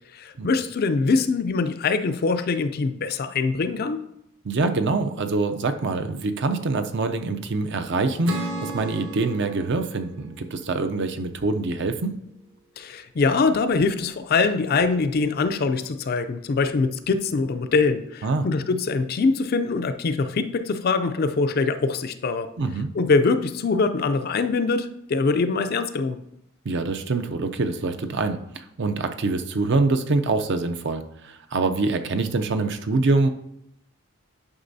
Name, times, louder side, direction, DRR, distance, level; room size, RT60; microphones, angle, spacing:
voice 1, 0.1-4.0 12.8-22.5 22.9-26.2, left 4 dB, 45° left, 9 dB, 0.4 m, -23 dB
voice 2, 4.4-12.2 18.2-18.5 22.6-22.9 26.6-33.3, right 3 dB, 55° right, 8 dB, 0.5 m, -25 dB
Acoustic guitar / Strum, 8.3-11.7, right 1 dB, 75° right, 1.3 m, -35 dB
9.6 x 5.9 x 2.7 m, 0.80 s
head